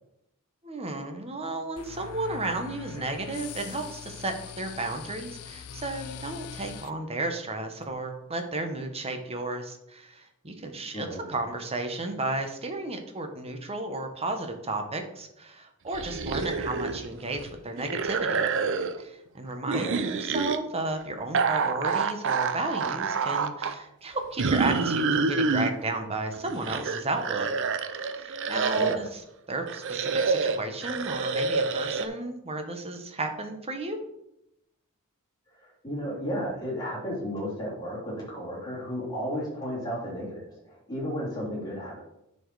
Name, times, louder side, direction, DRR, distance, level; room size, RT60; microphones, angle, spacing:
voice 1, 0.6-18.4 19.0-27.5 28.1-29.1 29.5-34.0, right 2 dB, 25° right, 6 dB, 1.0 m, -33 dB
sound 1, 1.8-6.9, left 7 dB, 85° left, 0.5 m, -42 dB
voice 2, 10.9-11.2 19.7-20.0 28.7-29.1 35.6-42.0, equal, 15° left, -6 dB, 3.3 m, -33 dB
sound 2, 15.9-17.1 17.3-19.0 19.6-20.6 21.3-23.7 24.4-25.7 26.3-29.1 29.7-32.1, right 4 dB, 60° right, 0.6 m, -27 dB
9.8 x 4.4 x 4.7 m, 0.84 s
head